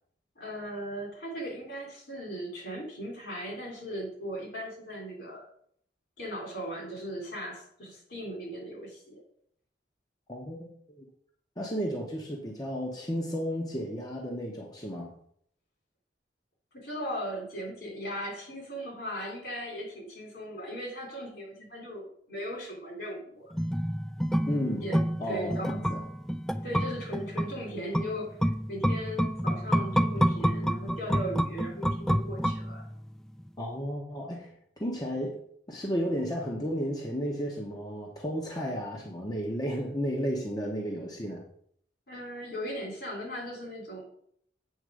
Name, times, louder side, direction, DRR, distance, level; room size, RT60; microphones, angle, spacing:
voice 1, 0.4-5.5 6.2-9.2 16.7-23.5 24.8-25.0 25.3-25.8 26.6-32.9 42.1-44.0, equal, 65° left, 0 dB, 3.5 m, -38 dB
voice 2, 10.3-10.7 11.0-11.1 11.6-15.1 24.5-24.8 25.2-26.0 33.6-35.4 35.7-41.4, equal, 20° left, 0 dB, 0.9 m, -33 dB
sound 1, 23.5-33.1 33.4-33.5, equal, 5° left, 0.3 m, -29 dB
8.2 x 4.3 x 6.3 m, 0.66 s
head